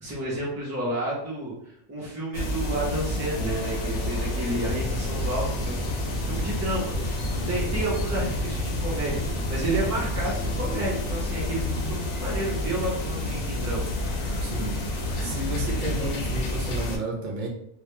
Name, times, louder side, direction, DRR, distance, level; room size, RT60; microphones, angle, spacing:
voice 1, 0.0-5.9 6.2-13.9, right 1 dB, 25° right, -6 dB, 0.3 m, -31 dB
sound 1, 2.3-17.0, left 1 dB, 85° left, 0.9 m, -29 dB
sound 2, 4.6-11.1, left 1 dB, 5° left, 0.9 m, -35 dB
voice 2, 14.4-14.8 15.2-17.5, right 1 dB, 50° right, 0 dB, 0.6 m, -32 dB
2.4 x 2.1 x 2.9 m, 0.77 s
omnidirectional pair, 1.2 m